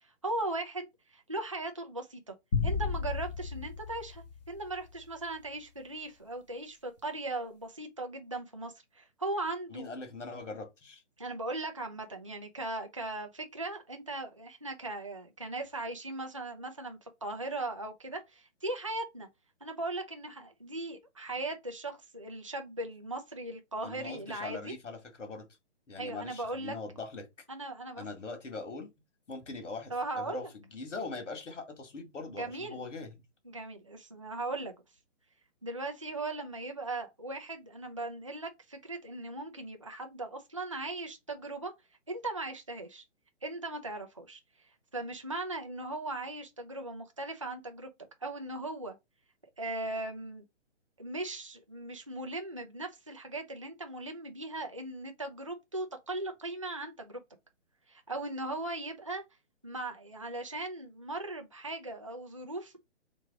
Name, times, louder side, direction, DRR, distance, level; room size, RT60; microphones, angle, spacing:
voice 1, 0.0-2.3 2.6-9.9 11.2-19.3 19.6-24.7 26.0-26.7 27.5-28.0 29.9-30.5 32.3-32.8 33.4-34.7 35.6-41.7 42.1-43.0 43.4-44.4 44.9-47.9 48.2-48.9 49.6-50.4 51.0-57.2 57.9-59.2 59.6-62.8, right 2 dB, 30° right, 0.3 m, -38 dB
sound 1, 2.5-5.0, left 5 dB, 35° left, 0.9 m, -33 dB
voice 2, 9.7-11.0 23.8-25.5 25.9-27.3 28.0-28.9 29.3-33.1, left 3 dB, 90° left, 2.0 m, -41 dB
3.4 x 3.1 x 4.6 m
hypercardioid pair, 170°, 36 cm